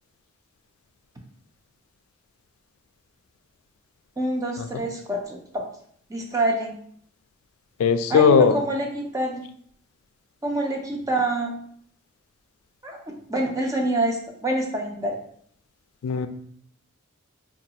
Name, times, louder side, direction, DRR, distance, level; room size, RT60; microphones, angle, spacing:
voice 1, 4.2-5.6 6.1-6.7 8.1-9.5 10.4-11.5 12.8-15.2, right 1 dB, 15° right, 1 dB, 0.5 m, -26 dB
voice 2, 7.8-8.6 16.0-16.3, left 6 dB, 85° left, 9 dB, 0.3 m, -18 dB
4.4 x 2.3 x 2.8 m, 0.63 s
head